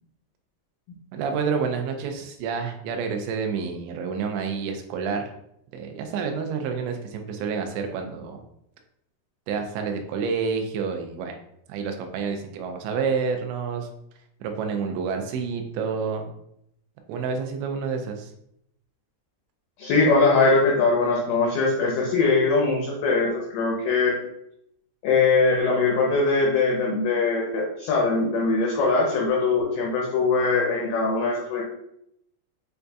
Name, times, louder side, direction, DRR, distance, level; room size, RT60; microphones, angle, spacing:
voice 1, 1.1-5.3 5.7-8.4 9.5-11.3 11.7-13.9 14.4-16.3 17.1-18.3, right 5 dB, 85° right, 4 dB, 2.9 m, -28 dB
voice 2, 19.8-24.1 25.0-31.6, left 3 dB, 85° left, -2 dB, 2.0 m, -21 dB
7.5 x 2.6 x 2.3 m, 0.76 s
omnidirectional pair, 5.0 m